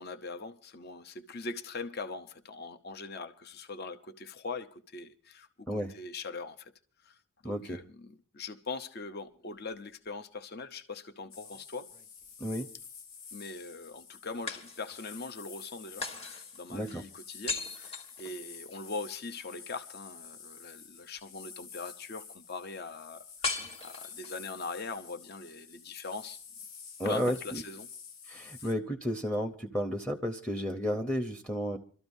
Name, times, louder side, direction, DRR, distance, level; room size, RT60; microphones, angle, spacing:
voice 1, 0.0-6.7 7.0-7.2 7.4-11.9 13.3-26.4 27.0-27.9 28.6-28.7, left 3 dB, 45° left, 0.7 m, -41 dB
voice 2, 7.4-7.8 12.4-12.7 16.7-17.0 27.0-27.6 28.3-31.8, equal, 5° left, 0.7 m, -32 dB
sound 1, 11.3-28.7, left 6 dB, 70° left, 1.2 m, -49 dB
sound 2, 11.4-12.4 14.5-15.2 16.0-18.9 23.4-24.5, left 3 dB, 25° left, 1.4 m, -39 dB
27.0 x 13.0 x 2.7 m
head